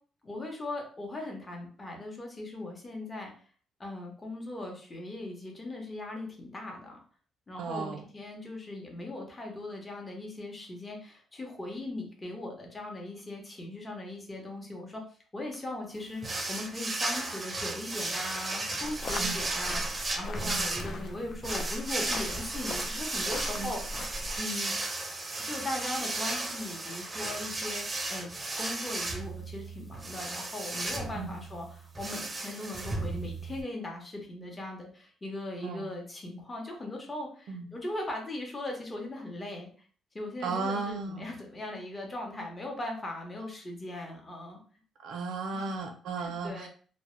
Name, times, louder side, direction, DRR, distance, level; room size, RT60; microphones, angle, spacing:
voice 1, 0.2-3.3 3.8-7.0 7.5-15.0 15.3-24.0 24.4-24.8 25.4-28.3 28.6-39.7 40.1-44.6 45.5-45.7 46.2-46.7, left 2 dB, 25° left, 1 dB, 0.7 m, -39 dB
voice 2, 7.6-8.0 19.2-19.4 20.4-20.7 23.5-23.7 31.1-31.4 35.6-35.9 37.5-37.7 40.4-41.3 45.0-46.7, right 4 dB, 80° right, 4 dB, 0.5 m, -35 dB
sound 1, 16.2-33.6, right 2 dB, 25° right, 0.5 m, -35 dB
sound 2, 18.8-24.4, left 1 dB, 55° left, 0.3 m, -39 dB
2.1 x 2.0 x 3.0 m, 0.43 s
cardioid pair, 90°, 0 cm